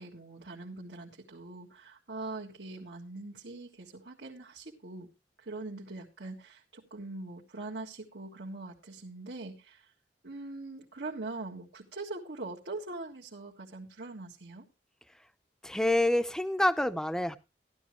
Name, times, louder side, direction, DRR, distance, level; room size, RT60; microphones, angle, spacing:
voice 1, 0.0-5.1 5.4-9.9 10.2-14.7, right 2 dB, 80° right, -3 dB, 1.7 m, -42 dB
voice 2, 15.6-17.4, left 1 dB, 5° left, 12 dB, 0.7 m, -27 dB
14.0 x 11.5 x 3.0 m, 0.27 s
head